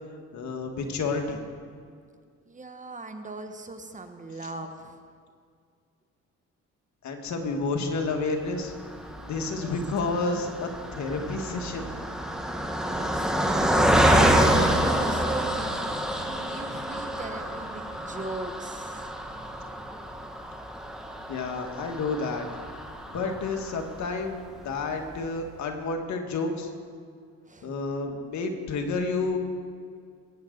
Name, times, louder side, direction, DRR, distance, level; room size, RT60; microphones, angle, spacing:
voice 1, 0.3-1.4 7.0-8.7 9.2-11.9 21.3-22.5 23.1-26.7 27.6-29.4, left 3 dB, 65° left, 4 dB, 1.7 m, -30 dB
voice 2, 2.5-5.0 9.5-9.7 12.6-13.6 14.6-15.8 16.2-19.1 27.5-27.8, right 3 dB, 25° right, 6 dB, 1.1 m, -40 dB
Car passing by, 8.6-24.1 24.6-24.7 25.0-25.2, right 1 dB, ahead, 1.3 m, -27 dB
21.0 x 9.4 x 3.9 m, 2.1 s
cardioid pair, 90°, 30 cm